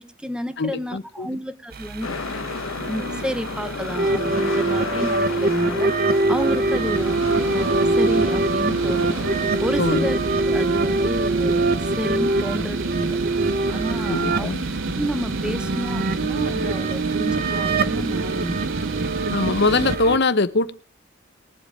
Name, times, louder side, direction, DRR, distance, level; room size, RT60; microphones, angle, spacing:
voice 1, 0.0-2.2 2.8-5.9 6.3-7.2 7.5-13.2 13.7-14.5 15.0-18.8, equal, 5° right, 0.7 m, -30 dB
voice 2, 0.6-1.3 9.8-10.1 14.1-14.6 19.3-20.7, left 3 dB, 60° left, 0.9 m, -22 dB
sound 1, 1.7-20.2, right 3 dB, 50° right, 1.1 m, -24 dB
sound 2, 2.0-14.1 14.3-14.4, left 4 dB, 80° left, 1.1 m, -34 dB
sound 3, 6.4-20.0, right 3 dB, 70° right, 0.9 m, -29 dB
20.5 x 7.6 x 4.8 m
head